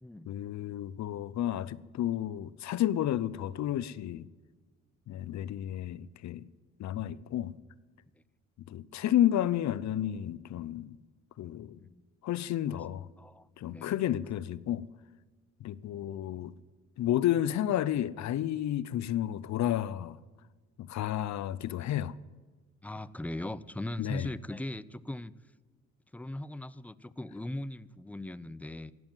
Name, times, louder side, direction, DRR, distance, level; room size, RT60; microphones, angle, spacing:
voice 1, 0.3-4.3 5.1-6.5 6.8-7.5 8.7-11.0 11.4-11.8 12.2-13.1 13.6-14.8 15.6-16.5 17.0-20.2 20.8-22.1 24.0-24.3, left 12 dB, 65° left, 0.6 m, -31 dB
voice 2, 13.2-14.0 22.8-25.3 26.1-28.9, left 1 dB, 5° left, 0.4 m, -39 dB
16.0 x 7.9 x 9.1 m
cardioid pair, 90°, 30 cm